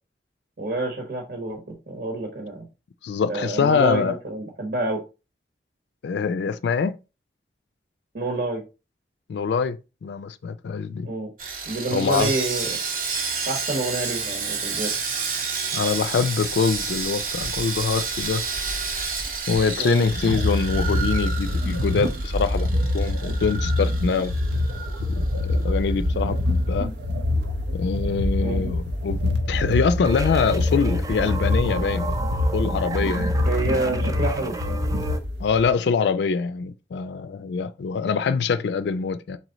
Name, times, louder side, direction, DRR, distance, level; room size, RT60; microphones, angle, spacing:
voice 1, 0.6-2.7 3.3-5.0 8.1-8.6 11.0-11.3 11.7-12.8 13.5-14.9 19.8-20.0 28.4-28.6 33.4-34.8, right 2 dB, 70° right, 1.2 m, -28 dB
voice 2, 3.0-4.2 6.0-7.0 9.3-11.1 11.9-12.3 15.7-18.4 19.5-22.7 22.9-24.3 25.2-26.9 27.7-32.1 32.5-33.4 35.4-39.4, left 5 dB, 80° left, 0.3 m, -24 dB
Sawing, 11.4-25.6 25.9-26.1 26.5-26.7, right 5 dB, 50° right, 0.8 m, -30 dB
sound 1, 20.0-35.7, left 1 dB, 85° right, 0.7 m, -25 dB
sound 2, 30.0-35.2, right 3 dB, 20° right, 0.4 m, -34 dB
4.0 x 3.1 x 3.9 m
head